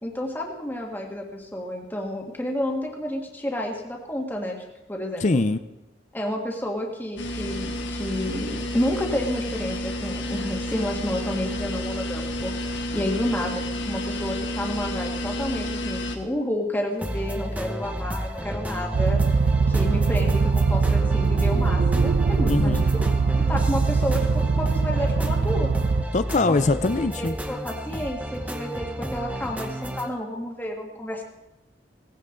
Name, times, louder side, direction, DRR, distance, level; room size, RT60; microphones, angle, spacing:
voice 1, 0.0-5.4 6.1-19.2 19.7-22.8 23.5-24.3 24.6-25.7 26.5-26.6 27.2-31.2, left 1 dB, 10° left, 0 dB, 1.7 m, -30 dB
voice 2, 5.2-5.6 22.5-22.9 26.1-27.3, left 3 dB, 40° left, 12 dB, 0.5 m, -22 dB
sound 1, 7.2-16.2, left 1 dB, 90° left, 1.8 m, -30 dB
sound 2, 17.0-30.1, equal, 10° right, 1.0 m, -32 dB
sound 3, 18.9-26.1, right 4 dB, 60° right, 0.4 m, -22 dB
18.0 x 16.0 x 3.9 m, 0.99 s
head